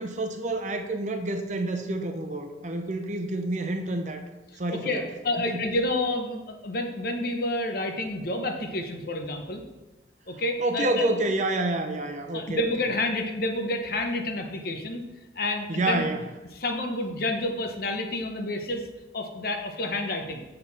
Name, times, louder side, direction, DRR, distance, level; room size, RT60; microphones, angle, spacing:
voice 1, 0.0-4.3 4.6-5.1 5.5-5.6 10.6-12.7 15.7-16.3, right 2 dB, 40° right, 5 dB, 0.7 m, -28 dB
voice 2, 4.7-9.6 10.3-11.1 12.3-15.0 15.4-16.0 16.6-18.8 19.1-20.4, left 2 dB, 55° left, 4 dB, 0.9 m, -29 dB
7.8 x 6.7 x 4.1 m, 1.1 s
head